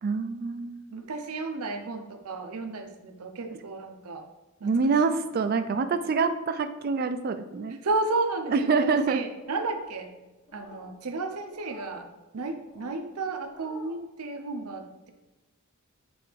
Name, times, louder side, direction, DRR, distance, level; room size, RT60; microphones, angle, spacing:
voice 1, 0.0-0.8 4.6-7.8 8.5-9.2, right 4 dB, 40° right, 9 dB, 0.3 m, -26 dB
voice 2, 0.9-4.3 4.6-5.0 7.7-10.1 10.5-12.1 12.3-15.1, right 3 dB, 80° right, 4 dB, 0.7 m, -33 dB
sound 1, 9.4-10.0 10.5-10.9 11.5-12.0 12.6-13.0 13.4-14.0, left 2 dB, 55° left, 1.3 m, -48 dB
8.7 x 3.4 x 3.3 m, 1.1 s
head